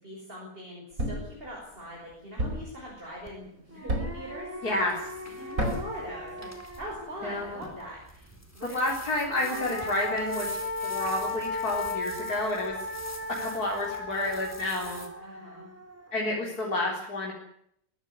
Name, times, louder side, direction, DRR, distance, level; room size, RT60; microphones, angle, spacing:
voice 1, 0.0-4.5 5.2-6.5 6.8-8.9 15.2-15.7, equal, 35° right, -2 dB, 6.3 m, -42 dB
Thump thud, 1.0-1.4 2.4-2.8 3.9-4.3 5.6-6.0, right 1 dB, 60° right, 5.4 m, -29 dB
sound 1, 3.3-3.4 3.7-7.4 9.0-16.3, left 2 dB, 10° right, 3.8 m, -37 dB
voice 2, 4.6-5.1 7.2-7.6 8.6-10.6 10.8-12.8 13.4-15.0 16.1-17.3, left 2 dB, 70° left, -2 dB, 4.5 m, -30 dB
sound 2, 4.6-15.1, equal, 10° left, 3.9 m, -47 dB
22.5 x 15.0 x 9.6 m, 0.72 s
omnidirectional pair, 1.7 m